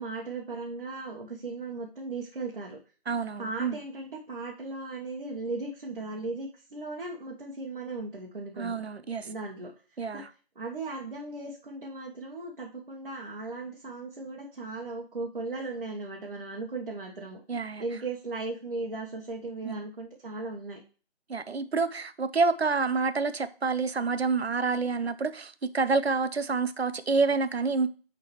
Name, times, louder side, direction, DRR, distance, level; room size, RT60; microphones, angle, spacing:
voice 1, 0.0-2.8 3.4-8.8 9.2-10.2 10.5-17.4 17.8-20.8, right 3 dB, 50° right, 1.3 m, -37 dB
voice 2, 3.1-3.8 8.6-9.3 10.0-10.3 17.5-17.8 19.6-19.9 21.3-27.9, right 4 dB, 75° right, 0.7 m, -28 dB
9.5 x 3.8 x 3.1 m
figure-of-eight pair, 155°, 32 cm